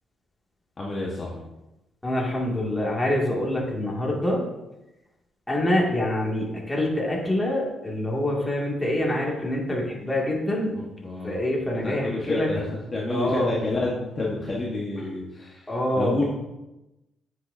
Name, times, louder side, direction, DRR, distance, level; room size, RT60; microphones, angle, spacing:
voice 1, 0.8-1.4 10.7-11.4 11.8-12.7 12.9-15.7 15.9-16.2, left 2 dB, 35° left, -4 dB, 1.4 m, -29 dB
voice 2, 2.0-4.4 5.5-10.7 11.2-12.5 13.1-13.6 15.7-16.2, left 1 dB, 10° left, -3 dB, 2.3 m, -25 dB
9.3 x 6.3 x 2.7 m, 0.97 s
cardioid pair, 90°, 0 cm